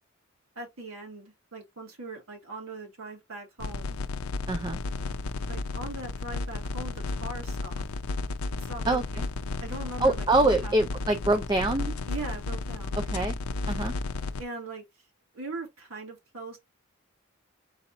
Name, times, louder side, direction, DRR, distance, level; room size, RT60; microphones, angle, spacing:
voice 1, 0.6-4.0 5.5-7.8 8.6-9.3 9.6-10.9 12.1-13.0 14.4-14.8 15.3-16.6, right 2 dB, 80° right, 2.3 m, -40 dB
sound 1, 3.6-14.4, left 3 dB, 85° left, 0.5 m, -33 dB
voice 2, 4.5-4.8 8.9-9.2 10.0-11.9 13.1-13.4 13.7-13.9, right 2 dB, 20° right, 0.4 m, -25 dB
4.0 x 2.9 x 3.7 m
head